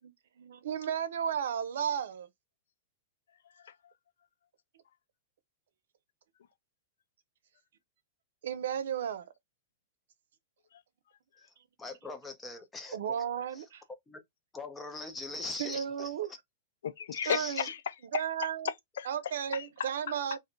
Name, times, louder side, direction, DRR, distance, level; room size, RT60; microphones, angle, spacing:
voice 1, 0.0-2.3 8.4-9.3 12.9-13.8 15.6-16.3 17.3-17.7 18.1-18.7 19.0-20.4, right 8 dB, 80° right, 0.6 m, -34 dB
voice 2, 11.8-13.0 13.5-13.6 14.1-14.2 14.5-16.1 17.2-17.7, left 3 dB, 10° left, 0.7 m, -41 dB
voice 3, 16.8-18.2 18.6-19.1 19.5-20.1, left 8 dB, 85° left, 0.4 m, -35 dB
2.6 x 2.2 x 3.8 m
hypercardioid pair, 145°, 0 cm